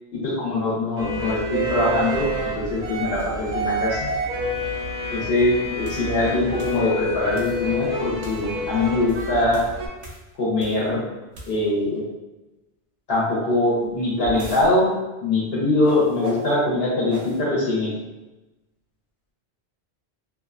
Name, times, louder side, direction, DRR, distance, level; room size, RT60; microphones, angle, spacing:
voice 1, 0.1-2.3 2.6-4.1 5.1-9.6 10.4-11.0 11.5-12.0 13.1-14.9 15.2-17.9, left 2 dB, 65° left, -6 dB, 0.9 m, -22 dB
sound 1, 1.0-9.9, equal, 70° right, 0.8 m, -28 dB
sound 2, 5.8-6.1 6.6-6.8 7.3-7.7 8.2-8.5 8.9-10.9 11.3-11.8 13.8-14.7 15.8-16.5 17.1-17.4, right 1 dB, 55° right, 0.4 m, -38 dB
2.4 x 2.2 x 2.4 m, 1.1 s
omnidirectional pair, 1.1 m